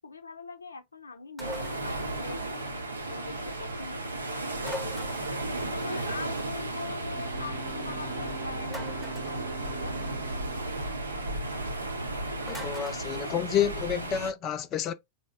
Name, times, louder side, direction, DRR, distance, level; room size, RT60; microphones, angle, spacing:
voice 1, 0.0-9.9, left 4 dB, 75° left, 0.7 m, -43 dB
sound 1, 1.4-1.9 4.6-5.4 8.7-9.4 12.5-13.0, left 1 dB, ahead, 0.7 m, -41 dB
sound 2, 1.4-14.3, right 2 dB, 80° right, 0.6 m, -34 dB
Wind instrument woodwind instrument, 7.1-10.8, right 8 dB, 40° right, 0.6 m, -46 dB
voice 2, 12.5-14.9, left 9 dB, 35° left, 0.4 m, -29 dB
4.0 x 2.0 x 3.4 m
figure-of-eight pair, 90°, 0 cm